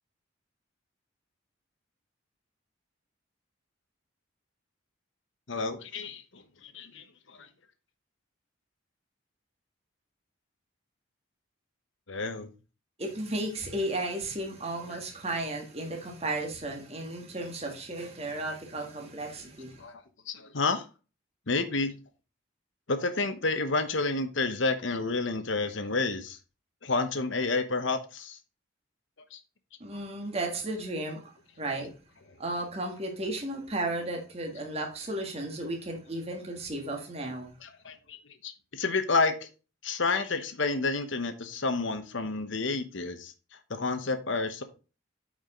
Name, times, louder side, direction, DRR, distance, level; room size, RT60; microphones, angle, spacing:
voice 1, 5.5-7.5 12.1-12.5 14.9-15.0 19.8-20.9 21.5-22.0 22.9-26.4 26.8-28.4 29.3-29.4 37.6-39.5 39.8-44.6, left 3 dB, 65° left, 1.0 m, -30 dB
voice 2, 13.0-19.8 29.8-31.3 31.6-31.9 32.4-37.5, right 2 dB, 30° right, 1.7 m, -34 dB
9.1 x 5.0 x 3.7 m
head